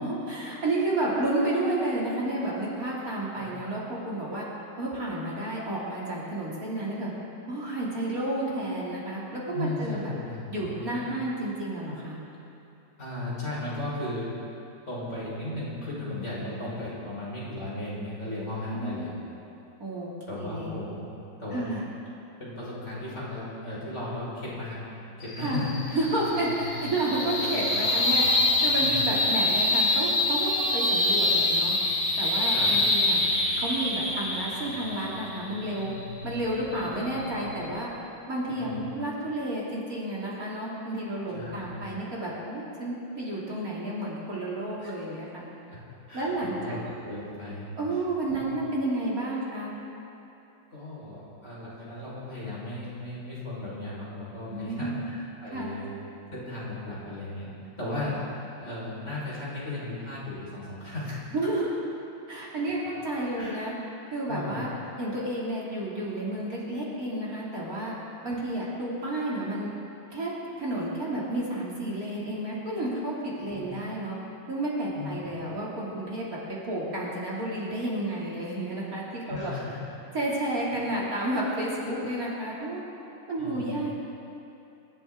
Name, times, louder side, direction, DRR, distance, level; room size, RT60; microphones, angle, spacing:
voice 1, 0.0-4.5 4.8-7.1 7.5-10.1 10.5-12.2 18.7-19.1 19.8-20.7 21.5-21.8 25.4-25.6 25.9-31.7 32.2-33.2 33.6-35.9 36.2-37.9 38.3-45.4 46.1-46.8 47.8-49.7 54.5-55.0 55.5-55.7 61.3-61.8 62.3-63.7 64.1-64.7 65.0-67.9 68.2-69.7 70.1-70.3 70.6-74.2 74.5-79.5 80.1-82.8 83.3-84.0, right 1 dB, 50° right, -6 dB, 3.4 m, -31 dB
voice 2, 9.5-11.1 13.0-14.3 14.9-19.1 20.3-21.1 21.4-21.7 22.4-24.8 25.2-25.7 28.7-29.1 32.5-32.8 38.5-38.8 41.3-41.9 44.8-44.9 45.7-45.8 46.1-47.7 48.3-48.4 50.7-55.9 56.3-57.5 57.8-61.3 63.3-63.6 64.3-64.7 73.5-73.6 74.9-75.1 79.3-79.8 83.4-83.9, left 1 dB, 40° left, -8 dB, 5.2 m, -36 dB
sound 1, 25.2-37.8, left 2 dB, 80° left, 3.4 m, -26 dB
26.0 x 13.0 x 3.9 m, 2.9 s
omnidirectional pair, 2.0 m